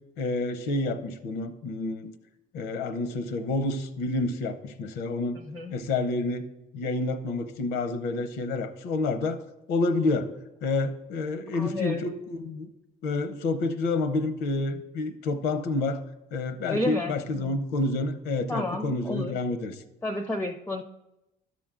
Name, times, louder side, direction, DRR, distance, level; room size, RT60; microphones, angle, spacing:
voice 1, 0.2-2.1 2.5-5.4 5.7-6.5 6.7-9.4 9.7-10.3 10.6-12.7 13.0-16.0 16.3-19.8, left 3 dB, 90° left, 11 dB, 0.7 m, -29 dB
voice 2, 5.4-5.8 11.5-12.0 16.7-17.6 18.5-19.4 20.0-20.8, left 1 dB, 10° left, 7 dB, 0.4 m, -31 dB
11.5 x 6.1 x 3.7 m, 0.96 s
cardioid pair, 110°, 17 cm